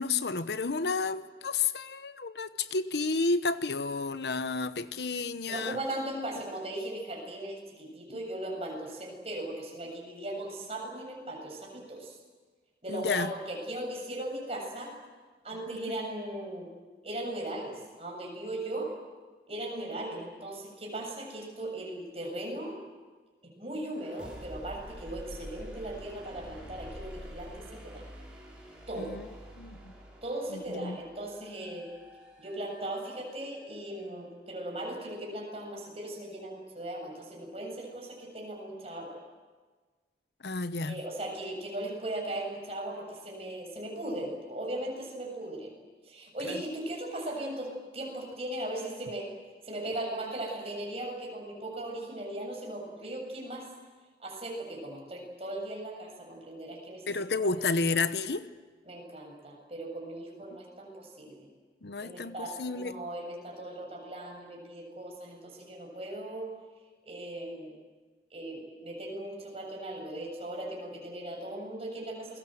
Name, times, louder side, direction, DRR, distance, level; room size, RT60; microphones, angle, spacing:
voice 1, 0.0-5.8 12.9-13.3 29.0-29.3 29.6-29.9 30.5-31.0 40.4-41.0 46.4-46.6 57.1-58.5 60.5-60.6 61.8-63.0, left 4 dB, 75° left, 12 dB, 1.0 m, -31 dB
voice 2, 5.5-12.2 12.8-14.9 15.4-16.7 17.0-18.9 19.5-22.8 23.4-28.0 28.9-29.2 30.2-31.9 32.4-39.2 40.9-45.7 46.1-49.3 49.6-53.7 54.2-57.1 58.9-61.5 62.0-66.5 67.0-67.8 68.3-72.4, right 1 dB, 35° right, 0 dB, 7.5 m, -38 dB
sound 1, 23.9-33.6, equal, 5° right, 6.1 m, -48 dB
28.5 x 21.5 x 7.8 m, 1.4 s
head